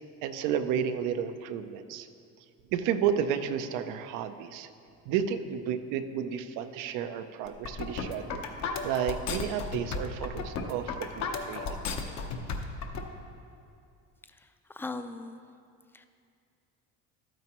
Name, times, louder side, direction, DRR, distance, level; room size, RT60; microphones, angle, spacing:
voice 1, 0.2-2.1 2.7-4.7 5.1-8.4 8.8-11.8, right 8 dB, 85° right, 9 dB, 0.6 m, -32 dB
sound 1, 7.5-13.0, left 5 dB, 65° left, 1.0 m, -34 dB
voice 2, 14.3-15.4 15.9-16.1, left 3 dB, 5° left, 9 dB, 0.4 m, -40 dB
12.0 x 9.0 x 3.0 m, 2.4 s
cardioid pair, 105°, 31 cm